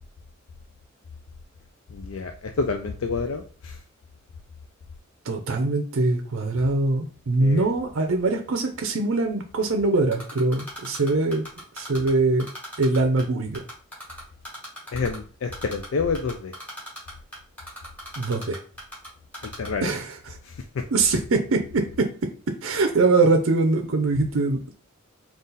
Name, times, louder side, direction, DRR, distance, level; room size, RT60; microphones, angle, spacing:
voice 1, 1.9-3.8 7.4-7.6 14.9-16.5 19.4-19.9 20.4-20.8, left 4 dB, 70° left, 5 dB, 0.4 m, -28 dB
voice 2, 5.2-11.5 11.7-12.5 12.8-13.6 18.2-18.6 19.8-20.4 20.9-24.7, right 3 dB, 70° right, 4 dB, 0.5 m, -23 dB
Typing, 10.1-12.1 12.4-13.2 13.5-15.2 15.5-15.9 16.1-19.1 19.3-19.7, equal, 5° left, 1.2 m, -38 dB
3.8 x 2.4 x 3.9 m, 0.41 s
head